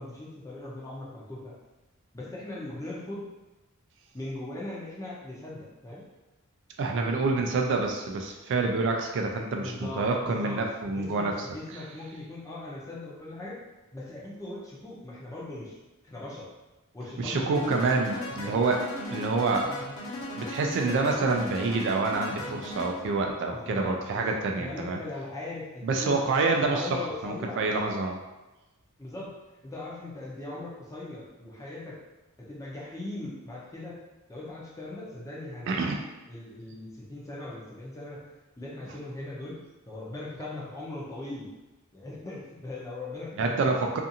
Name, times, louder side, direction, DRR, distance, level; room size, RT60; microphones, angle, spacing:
voice 1, 0.0-1.5 2.1-3.3 4.1-6.0 9.6-13.6 13.9-15.8 16.0-16.5 16.9-17.7 23.5-26.2 26.6-27.6 29.0-29.4 29.6-32.0 32.4-34.0 34.3-35.9 36.3-38.2 38.6-41.5 41.9-43.7, left 2 dB, 15° left, -5 dB, 0.5 m, -39 dB
voice 2, 6.8-11.3 17.2-18.8 19.1-19.7 20.4-25.0 25.8-28.2 35.7-35.9 43.4-44.0, right 3 dB, 55° right, 2 dB, 0.3 m, -27 dB
sound 1, 17.5-23.2, left 1 dB, 60° left, 0.9 m, -38 dB
2.5 x 2.4 x 2.7 m, 1.1 s
head